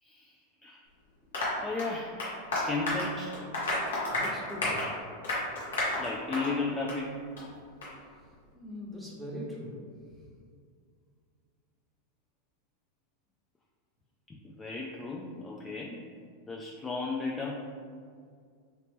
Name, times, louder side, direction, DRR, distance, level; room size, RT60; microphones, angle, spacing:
voice 1, 0.0-0.8 1.6-2.2 2.5-3.3 5.6-7.2 14.3-16.0 16.5-17.6, left 3 dB, 20° left, -2 dB, 0.3 m, -35 dB
Applause, 1.3-6.6 6.9-7.0 7.4-7.5 7.8-7.9, left 2 dB, 85° left, 1.1 m, -32 dB
voice 2, 4.1-4.9 8.5-9.8, equal, ahead, -5 dB, 1.0 m, -41 dB
3.0 x 2.9 x 3.4 m, 2.1 s
hypercardioid pair, 105°, 0 cm